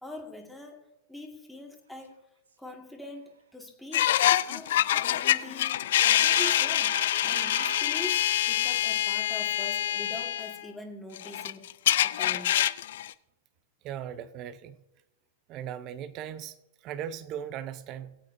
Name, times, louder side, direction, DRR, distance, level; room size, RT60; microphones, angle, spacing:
voice 1, 0.0-0.8 1.1-2.2 2.6-4.1 4.5-11.7 12.0-12.6, left 2 dB, 5° left, 1.9 m, -43 dB
sound 1, 3.9-10.6 11.2-13.1, left 12 dB, 65° left, 0.4 m, -25 dB
Speech / Shout, 4.0-5.5 6.0-7.9, right 4 dB, 85° right, 1.2 m, -42 dB
voice 2, 13.8-14.8 15.5-16.5 16.8-18.2, right 9 dB, 40° right, 0.7 m, -38 dB
20.5 x 8.5 x 2.7 m
hypercardioid pair, 110°, 0 cm